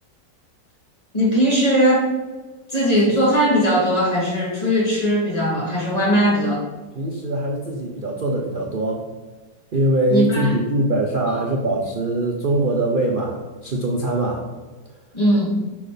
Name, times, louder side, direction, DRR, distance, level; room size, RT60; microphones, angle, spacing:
voice 1, 1.1-2.1 2.7-6.6 10.1-10.5 11.3-11.4 15.1-15.6, equal, 20° left, -5 dB, 1.9 m, -19 dB
voice 2, 6.9-9.0 9.7-14.4, right 1 dB, 60° right, -1 dB, 0.5 m, -22 dB
6.1 x 4.4 x 5.0 m, 1.3 s
omnidirectional pair, 1.9 m